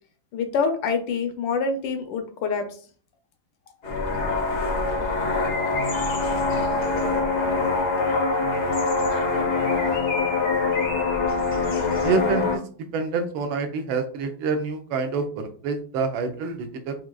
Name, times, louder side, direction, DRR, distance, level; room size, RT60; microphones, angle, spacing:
voice 1, 0.3-2.8, left 5 dB, 75° left, 7 dB, 1.3 m, -26 dB
sound 1, 3.8-12.6, left 3 dB, 60° left, 0.7 m, -24 dB
voice 2, 12.0-12.6 12.9-16.9, right 4 dB, 80° right, 6 dB, 1.4 m, -27 dB
5.9 x 2.4 x 2.3 m, 0.44 s
omnidirectional pair, 2.2 m